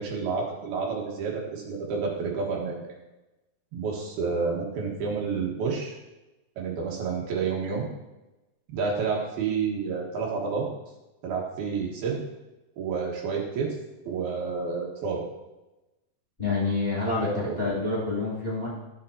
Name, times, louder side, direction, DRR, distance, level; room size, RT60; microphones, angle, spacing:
voice 1, 0.0-2.8 3.7-5.9 6.6-7.9 8.7-10.7 11.2-12.2 12.8-13.8 14.1-15.2 17.2-17.6, right 5 dB, 75° right, -2 dB, 3.3 m, -29 dB
voice 2, 16.4-18.7, left 3 dB, 15° left, -9 dB, 2.6 m, -27 dB
14.0 x 6.9 x 2.9 m, 1.0 s
omnidirectional pair, 4.6 m